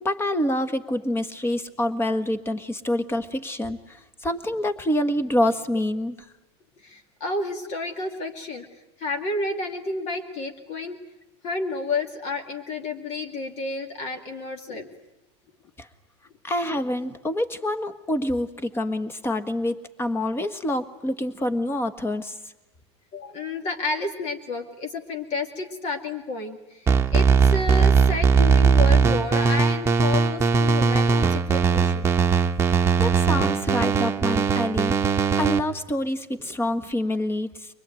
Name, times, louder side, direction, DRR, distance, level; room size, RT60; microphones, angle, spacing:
voice 1, 0.0-6.1 15.8-15.9 16.4-22.3 33.0-35.0 35.4-37.7, left 1 dB, 15° left, 11 dB, 1.5 m, -26 dB
voice 2, 6.8-8.6 9.0-11.0 11.4-14.9 23.1-26.8 27.1-32.1, left 3 dB, 50° left, 4 dB, 2.4 m, -30 dB
sound 1, 26.9-35.6, right 5 dB, 15° right, 1.2 m, -19 dB
24.0 x 20.5 x 9.2 m, 0.98 s
supercardioid pair, 115°, 15 cm